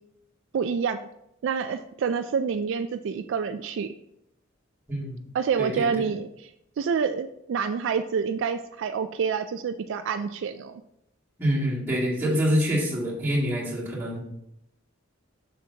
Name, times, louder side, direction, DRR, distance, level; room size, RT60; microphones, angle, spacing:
voice 1, 0.5-1.0 1.4-3.9 5.3-6.5 6.8-10.8, right 6 dB, 65° right, 9 dB, 0.3 m, -27 dB
voice 2, 4.9-5.2 5.6-6.0 11.4-14.2, equal, 10° right, -7 dB, 2.4 m, -26 dB
7.0 x 6.5 x 2.8 m, 0.80 s
head